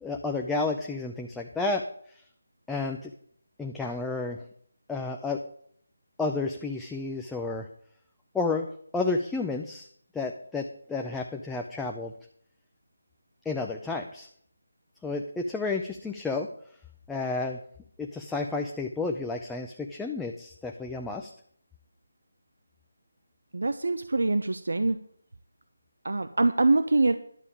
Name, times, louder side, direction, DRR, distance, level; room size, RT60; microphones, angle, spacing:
voice 1, 0.0-1.8 2.7-3.1 3.6-4.4 4.9-5.4 6.2-7.7 8.3-8.7 8.9-9.9 10.1-12.1 13.5-14.3 15.0-16.5 17.1-17.6 18.0-21.3, left 3 dB, 5° left, 1 dB, 0.5 m, -31 dB
voice 2, 23.5-25.0 26.0-27.1, right 2 dB, 75° right, 10 dB, 0.7 m, -24 dB
11.0 x 5.3 x 8.6 m, 0.62 s
figure-of-eight pair, 165°, 0 cm